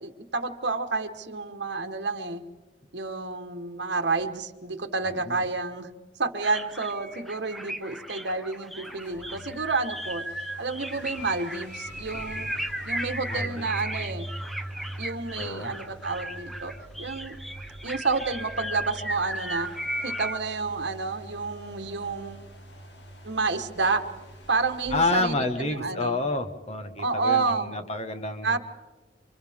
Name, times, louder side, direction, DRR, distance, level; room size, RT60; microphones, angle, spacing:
voice 1, 0.0-2.4 2.9-5.9 6.2-10.2 10.6-14.3 15.0-17.4 17.8-19.7 20.0-22.4 23.2-24.0 24.5-26.2 27.0-27.8 28.4-28.6, right 4 dB, 65° right, 6 dB, 1.4 m, -30 dB
voice 2, 5.1-5.5 13.3-13.7 15.3-15.7 24.9-28.6, left 2 dB, 35° left, 6 dB, 1.5 m, -29 dB
sound 1, 6.4-20.4, right 1 dB, ahead, 0.8 m, -36 dB
sound 2, 8.8-26.3, right 1 dB, 85° left, 2.6 m, -43 dB
29.5 x 25.0 x 3.6 m, 1.3 s
head